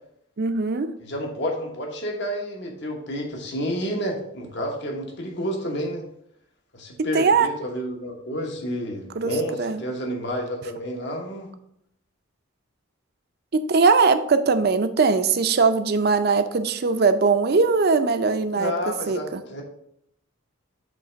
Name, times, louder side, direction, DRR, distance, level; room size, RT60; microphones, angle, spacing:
voice 1, 0.4-0.9 7.0-7.5 9.1-9.3 9.6-9.8 13.5-18.7 19.1-19.4, right 4 dB, 50° right, 10 dB, 0.5 m, -20 dB
voice 2, 1.0-6.0 6.7-11.5 18.6-19.6, equal, 55° left, 1 dB, 1.2 m, -30 dB
7.7 x 3.2 x 5.0 m, 0.73 s
head